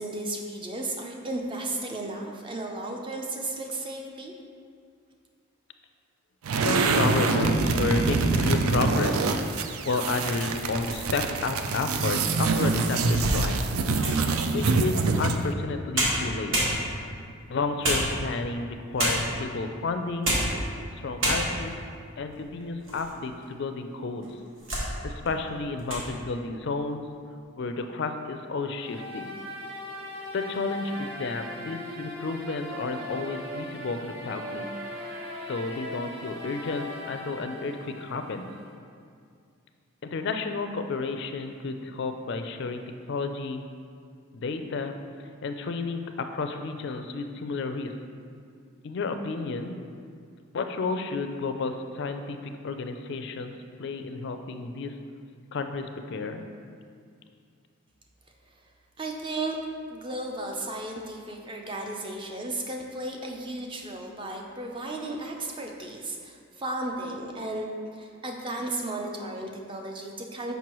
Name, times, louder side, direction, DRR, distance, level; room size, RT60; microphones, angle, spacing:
voice 1, 0.0-4.3 59.0-59.6 59.9-70.5, right 2 dB, 25° right, 1 dB, 0.5 m, -34 dB
sound 1, 6.4-15.5, right 3 dB, 80° right, 0.4 m, -25 dB
voice 2, 6.5-9.3 9.8-13.6 14.5-16.6 17.5-20.4 21.0-21.7 22.2-24.3 25.0-27.0 27.6-29.3 30.3-34.7 35.5-38.5 40.0-42.8 43.1-43.6 44.3-45.0 45.4-47.9 48.8-49.8 50.5-53.5 53.8-54.9 55.5-56.4, left 3 dB, 55° left, 7 dB, 0.4 m, -31 dB
sound 2, 10.7-11.4 12.0-12.1 12.6-14.3 15.6-15.7 15.9-17.2 17.8-18.5 19.0-19.4 20.1-20.6 20.9-21.0 21.2-21.8 22.3-23.1 23.4-23.5 24.2-24.9 25.3-25.5 25.8-26.1, right 1 dB, 65° right, 1.2 m, -28 dB
sound 3, 28.7-38.7, left 1 dB, 45° right, 1.0 m, -39 dB
6.0 x 5.4 x 3.0 m, 2.2 s
head